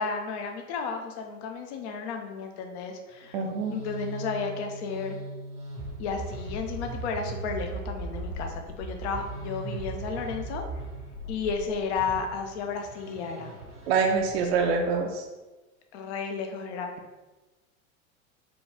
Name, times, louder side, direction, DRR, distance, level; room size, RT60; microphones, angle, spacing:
voice 1, 0.0-3.4 3.7-5.2 6.0-10.6 11.3-13.5 14.4-14.5 15.9-16.9, left 5 dB, 50° left, 4 dB, 0.6 m, -33 dB
sound 1, 3.2-15.0, right 2 dB, 85° right, 1.5 m, -39 dB
voice 2, 3.3-3.8 13.9-15.2, right 5 dB, 50° right, 3 dB, 0.5 m, -25 dB
4.9 x 2.3 x 3.5 m, 1.2 s
figure-of-eight pair, 90°, 43 cm